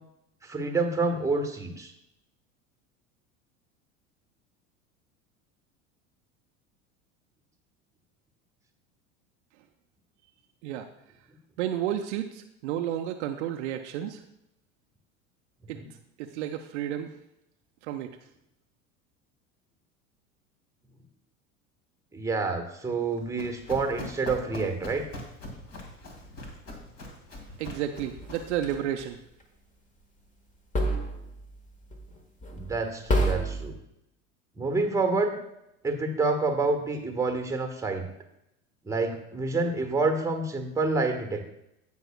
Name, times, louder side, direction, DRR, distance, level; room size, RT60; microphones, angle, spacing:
voice 1, 0.4-1.9 15.7-15.9 22.1-25.1 32.5-33.8 34.6-35.4 35.8-38.1 38.8-41.4, right 3 dB, 5° right, 4 dB, 1.3 m, -28 dB
voice 2, 11.6-14.2 15.7-15.8 16.2-17.1 17.9-18.2 27.6-29.2, right 11 dB, 60° right, 6 dB, 0.7 m, -31 dB
Run, 23.0-28.6, left 2 dB, 40° left, 2.2 m, -42 dB
sound 1, 28.2-29.0 30.7-31.5 31.9-32.1 32.4-32.8 33.1-33.7, right 1 dB, 20° left, 1.5 m, -28 dB
16.5 x 5.6 x 2.2 m, 0.83 s
figure-of-eight pair, 75°, 40 cm